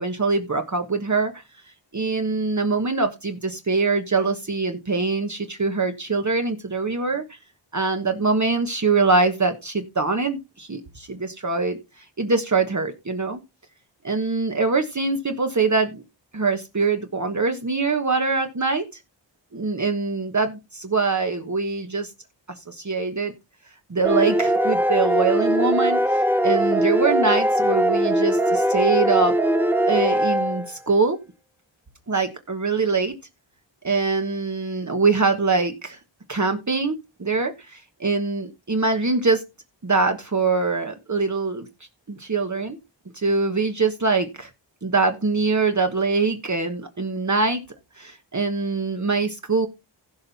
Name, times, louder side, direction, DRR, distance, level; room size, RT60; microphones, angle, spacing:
voice 1, 0.0-1.4 1.9-7.4 7.7-13.4 14.0-16.0 16.3-19.0 19.5-22.1 22.5-23.3 23.9-29.4 29.8-31.2 32.1-33.1 33.8-36.0 36.3-39.4 39.8-41.7 42.1-42.8 43.1-44.5 44.8-47.6 48.0-49.7, right 4 dB, 40° right, 5 dB, 1.3 m, -23 dB
sound 1, 24.0-30.7, right 1 dB, 5° right, 0.9 m, -21 dB
16.0 x 5.5 x 4.2 m, 0.26 s
wide cardioid pair, 75°, 44 cm